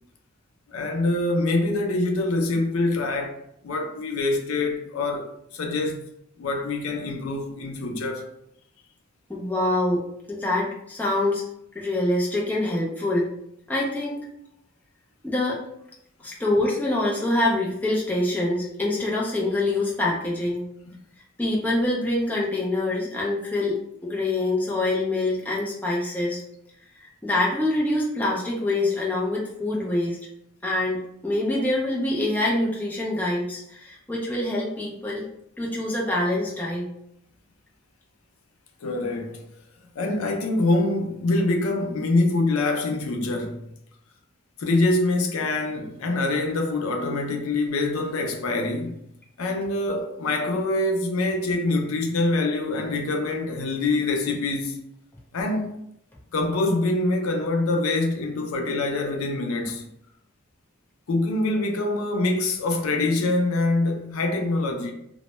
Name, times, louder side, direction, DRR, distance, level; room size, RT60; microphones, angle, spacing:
voice 1, 0.7-3.4 3.6-6.0 6.4-8.2 38.8-39.4 40.0-43.6 44.6-49.0 49.4-54.8 55.3-55.8 56.3-59.8 61.1-64.9, left 2 dB, 75° left, 0.4 m, -25 dB
voice 2, 9.3-10.0 10.3-11.4 11.8-13.3 13.7-14.2 15.2-15.6 16.2-20.6 21.4-26.4 27.0-30.2 30.6-35.2 35.6-36.9, left 2 dB, 10° left, 0.4 m, -25 dB
2.1 x 2.0 x 2.9 m
head